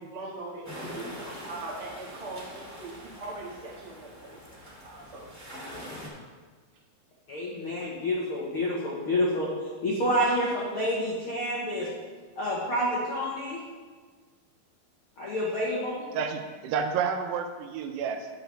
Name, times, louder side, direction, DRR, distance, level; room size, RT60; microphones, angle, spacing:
voice 1, 0.0-5.3, right 2 dB, 65° right, -7 dB, 0.3 m, -41 dB
sound 1, 0.6-6.1, left 1 dB, 10° right, 1.0 m, -43 dB
voice 2, 7.3-9.5 9.8-11.9 12.4-13.6 15.2-16.1, equal, 75° left, -5 dB, 1.2 m, -28 dB
voice 3, 16.1-18.3, right 6 dB, 85° right, 6 dB, 2.9 m, -30 dB
10.5 x 8.0 x 3.4 m, 1.4 s
omnidirectional pair, 4.7 m